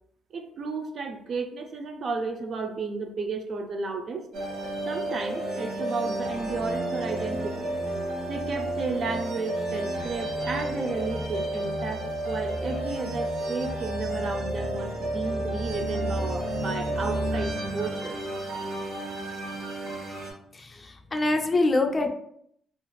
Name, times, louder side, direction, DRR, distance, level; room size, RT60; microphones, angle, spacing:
voice 1, 0.3-4.3 4.9-7.7 8.3-18.2, right 4 dB, 55° right, 4 dB, 0.4 m, -33 dB
sound 1, 4.3-20.3, right 1 dB, 70° right, 1.0 m, -31 dB
voice 2, 20.5-22.1, left 2 dB, 30° left, 4 dB, 0.4 m, -25 dB
2.4 x 2.4 x 3.0 m, 0.71 s
cardioid pair, 90°, 0 cm